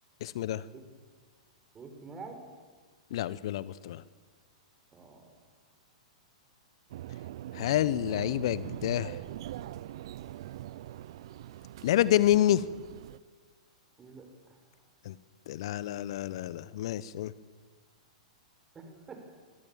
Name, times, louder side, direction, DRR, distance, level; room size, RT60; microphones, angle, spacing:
voice 1, 0.2-0.6 3.1-4.0 7.5-9.2 11.8-12.6 15.0-15.2 15.5-17.3, left 13 dB, 55° left, 18 dB, 0.9 m, -28 dB
voice 2, 1.7-2.4 4.9-5.3 14.0-14.6 18.7-19.4, right 4 dB, 20° right, 5 dB, 5.8 m, -47 dB
sound 1, 6.9-13.2, right 13 dB, 55° right, 0.8 m, -42 dB
26.5 x 22.5 x 7.4 m, 1.5 s
figure-of-eight pair, 105°, 3 cm